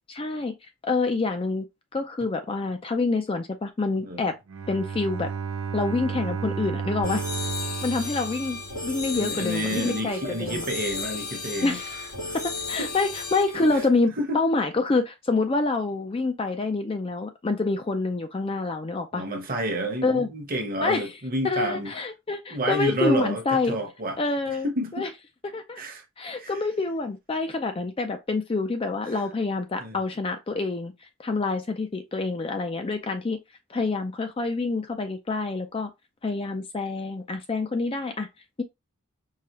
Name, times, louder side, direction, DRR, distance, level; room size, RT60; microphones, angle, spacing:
voice 1, 0.1-0.5 0.8-1.7 1.9-4.4 4.7-5.3 5.7-7.2 7.8-10.6 11.6-12.0 12.3-19.2 20.0-20.3 20.8-21.2 21.4-23.8 24.2-24.7 24.9-25.1 25.4-25.8 26.2-30.9 31.2-33.4 33.7-35.9 36.2-38.3, left 3 dB, 25° left, 0.4 m, -27 dB
Bowed string instrument, 4.5-9.3, right 6 dB, 65° right, 0.5 m, -33 dB
sound 1, 7.0-13.9, left 3 dB, 85° left, 2.6 m, -34 dB
voice 2, 9.1-11.8 12.2-12.4 12.8-12.9 14.3-14.4 19.1-21.9 22.5-24.2 24.6-25.0 25.8-26.0 26.4-26.5 29.8-30.0, right 1 dB, 40° right, 0.9 m, -29 dB
4.7 x 2.3 x 3.0 m
head